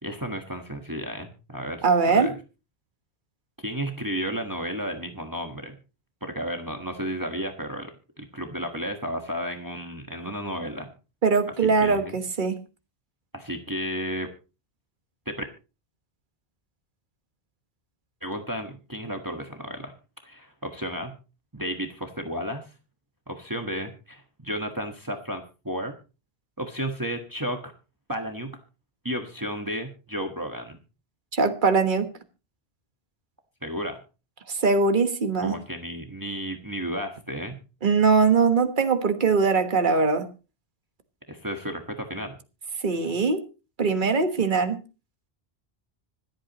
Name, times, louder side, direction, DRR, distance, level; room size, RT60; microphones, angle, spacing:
voice 1, 0.0-2.3 3.6-5.8 6.2-10.9 11.6-12.1 13.3-14.3 15.2-15.4 18.2-19.9 20.2-21.1 21.5-22.7 23.3-25.9 26.6-27.7 28.1-28.5 29.0-30.8 33.6-34.0 35.4-37.6 41.3-42.4, equal, 20° right, 1.4 m, -33 dB
voice 2, 1.8-2.3 11.2-12.6 31.3-32.1 34.5-35.6 37.8-40.2 42.8-43.4 43.8-44.8, right 4 dB, 50° right, 1.5 m, -21 dB
25.5 x 8.7 x 3.0 m
omnidirectional pair, 1.1 m